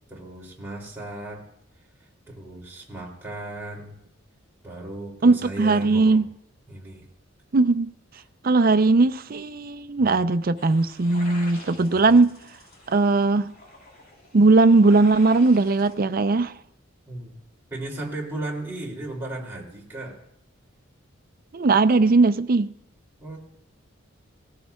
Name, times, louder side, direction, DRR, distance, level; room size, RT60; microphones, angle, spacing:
voice 1, 0.1-1.4 2.0-4.0 4.6-6.2 6.7-7.0 10.0-10.2 11.8-11.9 17.1-17.3 17.7-20.2 23.2-23.4, right 2 dB, 10° right, 2.9 m, -36 dB
voice 2, 5.2-6.3 7.5-7.9 8.4-12.3 12.9-13.5 14.3-16.5 21.5-22.7, right 3 dB, 45° right, 0.5 m, -19 dB
sound 1, 10.6-15.9, left 1 dB, 50° left, 3.6 m, -46 dB
20.0 x 14.0 x 2.3 m
head